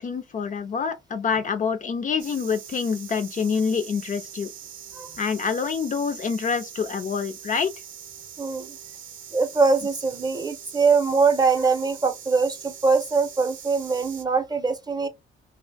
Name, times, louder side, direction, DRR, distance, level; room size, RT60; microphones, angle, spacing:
voice 1, 0.0-4.5 5.2-7.7, left 6 dB, 40° left, 0.5 m, -26 dB
sound 1, 2.2-14.2, right 8 dB, 90° right, 0.6 m, -42 dB
voice 2, 8.4-8.8 9.3-15.1, right 4 dB, 20° right, 0.7 m, -22 dB
2.7 x 2.1 x 4.0 m
cardioid pair, 90°, 20 cm